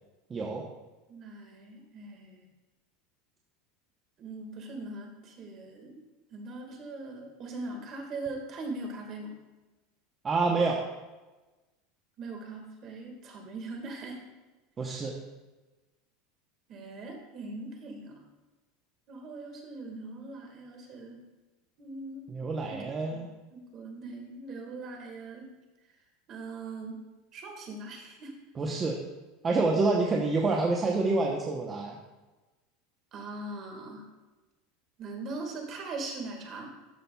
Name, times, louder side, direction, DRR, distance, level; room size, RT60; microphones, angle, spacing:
voice 1, 0.3-0.6 10.2-10.8 14.8-15.1 22.3-23.3 28.6-29.0 29.4-32.0, right 3 dB, 25° right, 0 dB, 0.8 m, -27 dB
voice 2, 1.1-2.4 4.2-6.0 6.3-9.4 12.2-14.2 16.7-18.1 19.1-21.2 21.8-22.3 22.7-25.5 26.3-27.0 27.3-28.3 33.1-34.1 35.0-36.7, right 2 dB, 40° right, 2 dB, 1.7 m, -41 dB
12.5 x 5.8 x 2.3 m, 1.2 s
supercardioid pair, 135°, 0 cm